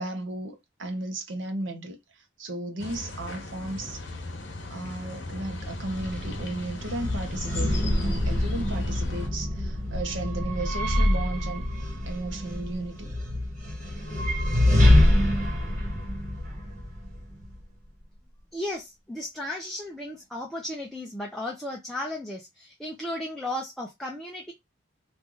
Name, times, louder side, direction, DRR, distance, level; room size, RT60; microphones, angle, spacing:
voice 1, 0.0-4.0 4.7-11.6 12.1-13.1, right 2 dB, 75° right, 0.9 m, -35 dB
sound 1, 2.8-9.3, left 2 dB, 65° left, 0.9 m, -37 dB
sound 2, 5.5-17.6, left 1 dB, 40° right, 1.4 m, -25 dB
voice 2, 18.5-24.5, left 1 dB, ahead, 0.5 m, -35 dB
3.1 x 2.6 x 3.7 m
head